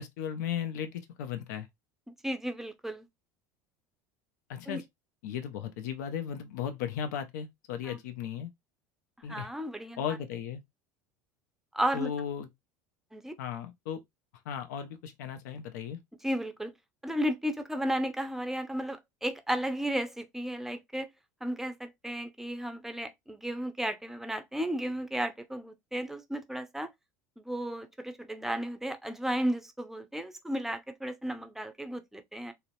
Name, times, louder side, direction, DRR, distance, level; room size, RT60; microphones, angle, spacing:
voice 1, 0.0-1.7 4.5-4.8 5.2-8.5 9.2-9.5 10.0-10.6 11.9-12.5 13.4-14.0 14.5-16.0, left 8 dB, 80° left, 0.5 m, -36 dB
voice 2, 2.2-3.1 4.7-4.8 7.8-8.0 9.3-10.0 11.7-12.1 13.1-13.4 16.2-16.7 17.0-21.1 21.4-26.9 27.4-32.5, equal, 5° right, 0.5 m, -34 dB
2.8 x 2.0 x 2.6 m
hypercardioid pair, 90°, 9 cm